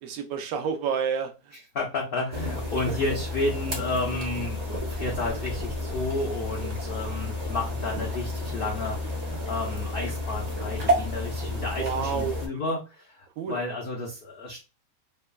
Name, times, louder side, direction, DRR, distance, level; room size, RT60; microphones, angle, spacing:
voice 1, 0.0-1.6 2.9-3.0 9.6-9.8 11.7-12.8 13.4-13.6, right 6 dB, 70° right, 5 dB, 1.0 m, -30 dB
voice 2, 1.7-14.6, left 2 dB, 80° left, -1 dB, 0.5 m, -32 dB
sound 1, 2.3-12.5, left 1 dB, 50° right, 0.4 m, -31 dB
3.1 x 2.1 x 2.2 m, 0.29 s
omnidirectional pair, 1.7 m